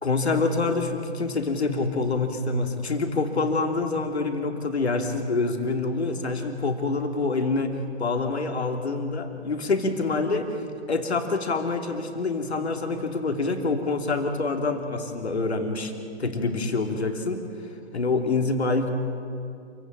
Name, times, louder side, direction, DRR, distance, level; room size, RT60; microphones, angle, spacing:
voice 1, 0.0-10.6 10.9-15.9 16.2-17.4 17.9-18.9, left 3 dB, 70° left, 5 dB, 3.0 m, -26 dB
27.5 x 16.5 x 8.7 m, 2.5 s
figure-of-eight pair, 135°, 33 cm